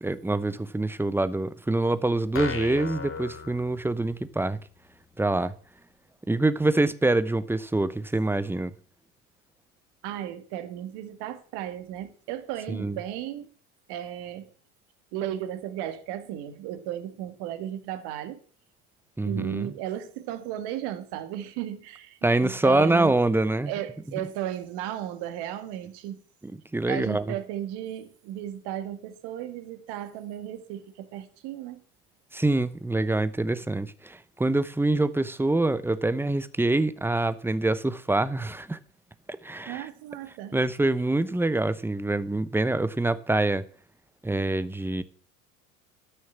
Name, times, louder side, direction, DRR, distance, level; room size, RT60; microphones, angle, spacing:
voice 1, 0.0-4.6 5.2-5.5 6.3-8.7 12.7-13.0 19.2-19.7 22.2-23.7 26.4-27.3 32.3-38.8 39.3-39.9 40.5-43.6 44.2-45.0, right 2 dB, 5° right, 0.8 m, -25 dB
sound 1, 2.3-4.3, left 6 dB, 30° left, 2.2 m, -36 dB
voice 2, 10.0-13.5 13.9-14.5 15.1-18.4 19.2-23.2 23.7-26.2 26.9-31.8 39.7-40.6, right 11 dB, 60° right, 1.9 m, -35 dB
13.0 x 6.4 x 7.3 m
hypercardioid pair, 80°, 44 cm